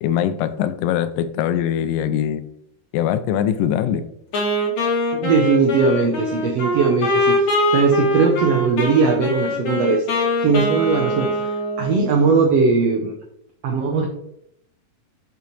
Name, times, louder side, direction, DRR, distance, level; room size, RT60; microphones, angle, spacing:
voice 1, 0.0-2.4 2.9-4.1, left 10 dB, 90° left, 11 dB, 2.3 m, -22 dB
Wind instrument woodwind instrument, 4.3-12.2, equal, 60° left, 2.8 m, -22 dB
voice 2, 5.1-10.0 10.4-11.5 11.8-13.1 13.6-14.1, right 4 dB, 85° right, 1 dB, 1.4 m, -19 dB
7.0 x 5.6 x 3.1 m, 0.75 s
omnidirectional pair, 3.8 m